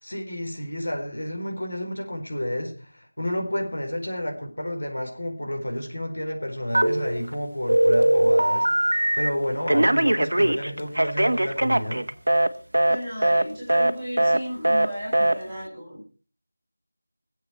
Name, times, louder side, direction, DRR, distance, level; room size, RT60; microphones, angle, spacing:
voice 1, 0.0-12.1, left 1 dB, 70° left, 3 dB, 4.2 m, -30 dB
Telephone, 6.7-7.3 7.7-9.3 9.7-12.5 12.7-13.0 13.2-13.4 13.7-13.9 14.2-14.4 14.6-14.9 15.1-15.3, right 1 dB, 80° right, 1.3 m, -20 dB
voice 2, 12.9-16.0, equal, ahead, -17 dB, 4.8 m, -34 dB
24.0 x 8.1 x 4.5 m, 0.37 s
figure-of-eight pair, 180°, 0 cm